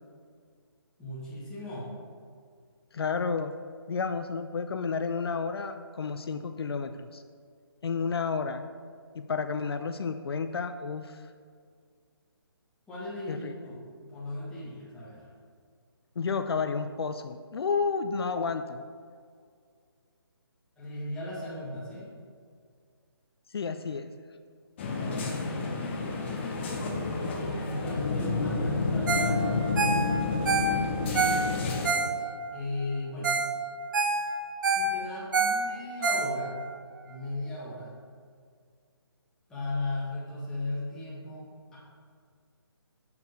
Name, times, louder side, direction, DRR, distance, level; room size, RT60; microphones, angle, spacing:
voice 1, 1.0-1.9 12.9-15.3 20.8-22.1 25.0-25.7 26.1-26.7 27.1-32.3 32.5-33.3 34.7-36.7 37.0-38.0 39.5-41.8, left 2 dB, 5° left, -9 dB, 1.6 m, -37 dB
voice 2, 2.9-3.5 3.9-7.2 7.8-8.6 9.1-11.3 13.3-13.5 16.2-18.8 23.5-24.1, left 5 dB, 70° left, 9 dB, 0.4 m, -31 dB
sound 1, 24.8-31.9, left 3 dB, 25° left, 0.7 m, -30 dB
Ringtone, 29.1-29.4 29.6-32.5 32.9-33.0 33.2-33.5 33.8-36.7 37.1-37.2, right 4 dB, 50° right, 0.9 m, -27 dB
6.8 x 4.7 x 5.2 m, 2.1 s
hypercardioid pair, 160°, 13 cm